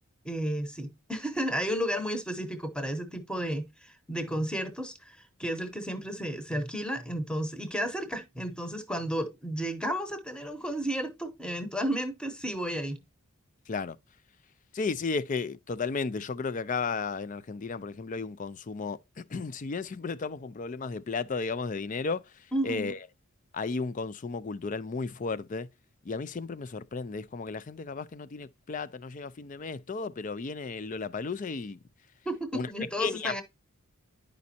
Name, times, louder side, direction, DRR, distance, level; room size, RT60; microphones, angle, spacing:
voice 1, 0.2-13.0 22.5-22.9 32.2-33.4, equal, 5° left, 0.9 m, -32 dB
voice 2, 14.7-22.2 22.6-23.0 23.5-25.7 26.1-31.8 32.5-32.7 33.0-33.4, left 4 dB, 35° left, 0.4 m, -34 dB
10.5 x 5.2 x 2.7 m
head